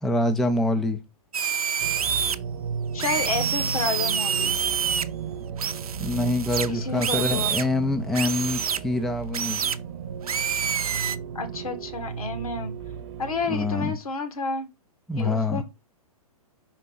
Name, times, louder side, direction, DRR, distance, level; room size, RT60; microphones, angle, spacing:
voice 1, 0.0-1.0 6.0-9.6 13.5-14.0 15.1-15.6, left 2 dB, ahead, 0.4 m, -25 dB
sound 1, 1.3-2.3 3.0-5.0 5.6-7.7 8.1-8.8 9.3-9.8 10.2-11.2, right 7 dB, 70° right, 0.6 m, -27 dB
sound 2, 1.8-13.8, right 7 dB, 45° right, 1.1 m, -35 dB
voice 2, 2.9-4.6 6.7-7.5 11.4-12.7 13.2-14.7 15.2-15.6, left 4 dB, 70° left, 1.8 m, -30 dB
5.6 x 4.6 x 3.8 m
figure-of-eight pair, 120°, 19 cm